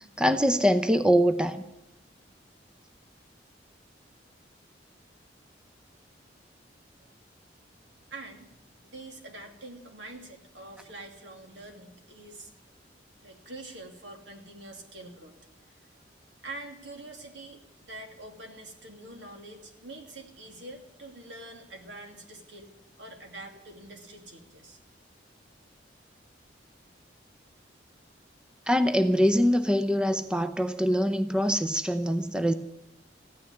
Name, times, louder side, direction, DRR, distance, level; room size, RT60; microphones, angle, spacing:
voice 1, 0.2-1.6 28.7-32.5, equal, 5° right, 0.6 m, -23 dB
voice 2, 8.1-8.5 8.8-12.5 13.2-15.4 16.4-22.7 23.0-24.8, right 2 dB, 85° right, 2.7 m, -45 dB
15.0 x 9.8 x 9.8 m
head